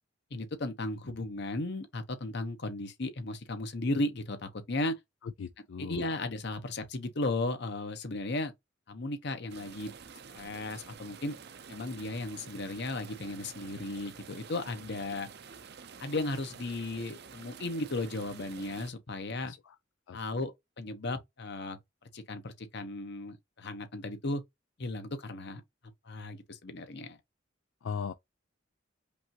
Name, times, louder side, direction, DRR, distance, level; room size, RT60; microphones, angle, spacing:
voice 1, 0.3-5.0 5.8-8.5 8.9-9.9 10.3-11.4 11.7-15.3 16.0-19.5 20.1-21.8 22.1-24.4 24.8-25.6 26.0-27.2, left 2 dB, 60° left, 1.0 m, -35 dB
voice 2, 5.4-6.1 19.4-19.7 20.1-20.2 27.8-28.1, left 6 dB, 85° left, 0.4 m, -39 dB
sound 1, 9.5-18.9, right 6 dB, 60° right, 0.6 m, -49 dB
5.2 x 2.7 x 2.9 m
head